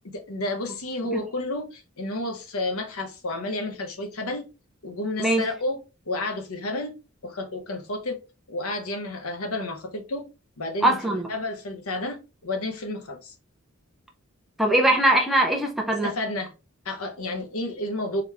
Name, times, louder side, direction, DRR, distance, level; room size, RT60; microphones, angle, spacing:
voice 1, 0.1-4.5 4.8-5.8 6.1-6.9 7.2-8.2 8.5-10.3 10.6-13.3 16.0-16.5 16.8-18.2, left 2 dB, 85° left, 1.0 m, -31 dB
voice 2, 10.8-11.3 14.6-16.1, right 1 dB, ahead, 0.6 m, -21 dB
3.9 x 3.0 x 3.4 m
head